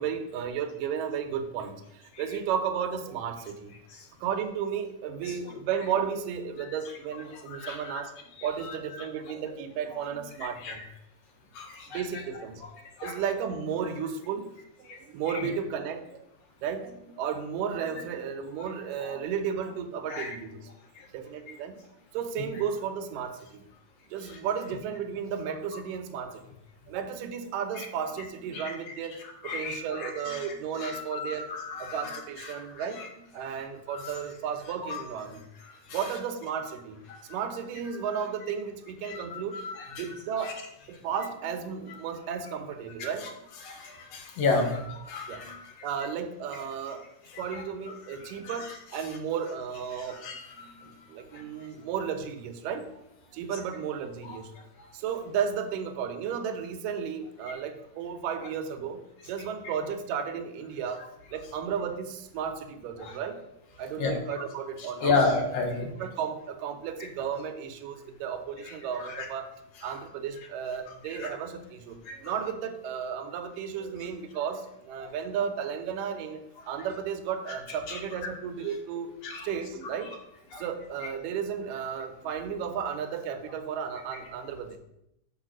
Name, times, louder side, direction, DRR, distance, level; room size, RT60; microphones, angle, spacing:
voice 1, 0.0-3.7 4.2-8.1 8.4-10.8 11.9-12.6 13.0-14.5 14.8-16.3 16.6-20.7 21.1-21.8 22.1-23.6 24.1-26.4 26.9-29.2 29.4-31.5 31.8-35.5 35.9-37.0 37.3-39.6 39.9-40.6 40.9-43.3 45.3-47.1 47.4-50.2 50.5-52.9 53.3-54.5 54.9-61.1 61.3-63.4 63.8-65.2 65.8-69.5 69.8-76.4 76.7-79.1 79.4-80.1 80.6-84.8, right 7 dB, 85° right, 7 dB, 2.4 m, -34 dB
voice 2, 7.6-8.0 10.6-10.7 11.6-12.0 13.0-13.1 14.9-15.0 19.0-19.1 20.1-20.3 29.4-30.4 30.8-32.1 32.5-32.6 33.9-34.0 35.9-36.0 37.1-37.2 39.1-40.0 43.6-45.6 47.3-47.5 50.2-50.4 63.0-63.1 64.0-64.2 65.0-65.8 69.2-69.3 71.2-71.3 72.1-72.2 79.2-79.5 80.5-80.6, left 3 dB, 60° left, 3 dB, 2.2 m, -31 dB
6.6 x 6.0 x 6.0 m, 0.83 s
omnidirectional pair, 3.8 m